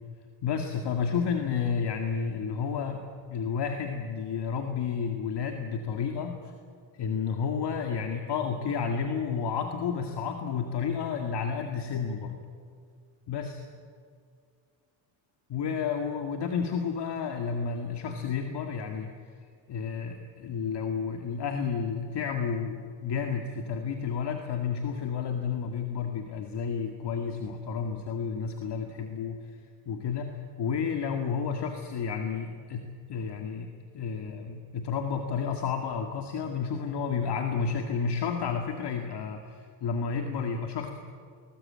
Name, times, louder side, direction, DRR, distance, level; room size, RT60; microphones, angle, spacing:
voice 1, 0.4-3.0 3.3-6.5 6.9-12.4 13.3-13.6 15.5-19.1 19.7-30.3 30.6-40.9, left 6 dB, 55° left, 4 dB, 2.1 m, -31 dB
21.0 x 20.0 x 8.7 m, 2.2 s
cardioid pair, 110°, 47 cm